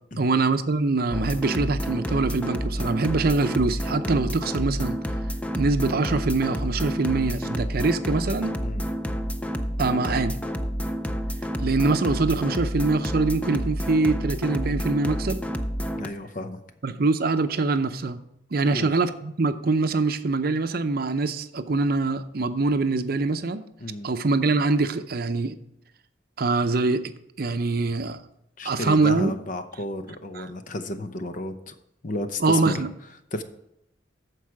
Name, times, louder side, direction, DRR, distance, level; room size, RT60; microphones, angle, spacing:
voice 1, 0.2-5.0 5.6-8.5 9.8-10.4 11.6-15.4 16.8-18.2 18.5-23.7 24.0-25.6 26.4-27.1 27.4-28.2 28.6-29.3 30.3-30.5 32.4-32.9, right 3 dB, 55° right, 10 dB, 0.6 m, -24 dB
sound 1, 1.1-16.1, equal, 5° left, 0.5 m, -29 dB
voice 2, 16.0-16.6 18.6-18.9 23.8-24.1 28.6-31.7 32.0-32.9 33.3-33.4, left 1 dB, 45° left, 8 dB, 0.8 m, -32 dB
14.0 x 4.7 x 4.8 m, 0.81 s
head